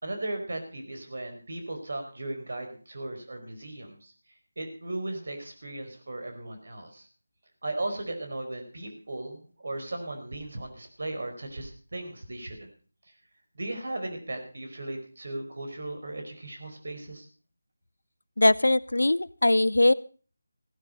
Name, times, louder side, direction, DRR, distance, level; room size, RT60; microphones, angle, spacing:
voice 1, 0.0-4.1 4.6-7.1 7.6-12.7 13.5-17.3, right 2 dB, 60° right, 5 dB, 4.8 m, -36 dB
voice 2, 18.4-19.9, left 2 dB, 75° left, 20 dB, 0.7 m, -21 dB
16.0 x 12.0 x 5.5 m, 0.39 s
figure-of-eight pair, 160°, 0 cm